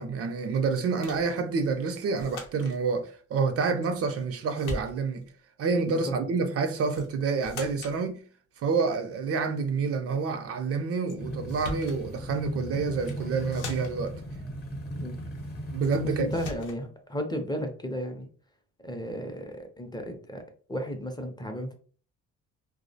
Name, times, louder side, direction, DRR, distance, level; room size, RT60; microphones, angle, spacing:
voice 1, 0.0-5.2 5.6-8.2 8.6-14.1 15.7-16.3, right 4 dB, 50° right, 0.4 m, -28 dB
sound 1, 1.0-1.3 2.2-2.8 3.8-4.3 4.6-5.3 6.9-7.1 7.4-8.0 11.1-11.2 11.5-12.0 12.9-13.2 13.5-14.1 15.8-16.0 16.3-16.8, left 2 dB, 90° left, 0.7 m, -40 dB
sound 2, 11.2-16.5, right 1 dB, 35° left, 0.8 m, -37 dB
voice 2, 16.2-18.3 18.8-20.4 20.7-21.7, equal, 15° left, 0.4 m, -34 dB
2.4 x 2.0 x 2.6 m
cardioid pair, 90°, 30 cm